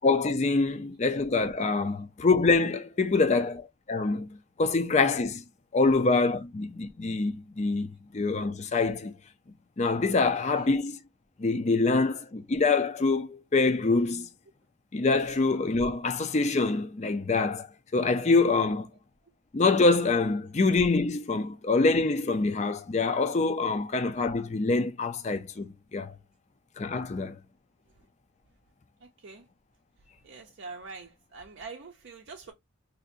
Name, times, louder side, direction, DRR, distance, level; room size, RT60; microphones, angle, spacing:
voice 1, 0.0-5.4 5.7-9.2 9.8-11.0 11.4-14.3 14.9-17.7 17.9-18.9 19.5-26.1 26.8-27.4, left 3 dB, 30° left, 0.4 m, -25 dB
voice 2, 29.0-29.5 30.2-32.5, right 4 dB, 55° right, 0.5 m, -44 dB
2.8 x 2.5 x 3.8 m
head